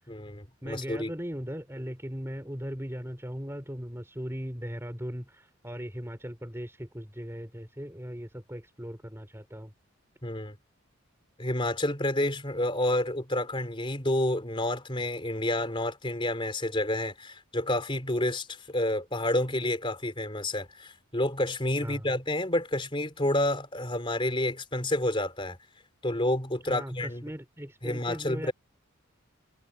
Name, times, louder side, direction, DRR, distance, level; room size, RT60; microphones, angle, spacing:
voice 1, 0.1-1.1 10.2-10.6 11.4-25.6 26.0-27.2 27.8-28.5, left 1 dB, 25° left, 3.5 m, -29 dB
voice 2, 0.6-9.7 21.8-22.1 26.7-28.5, equal, 10° right, 3.8 m, -38 dB
head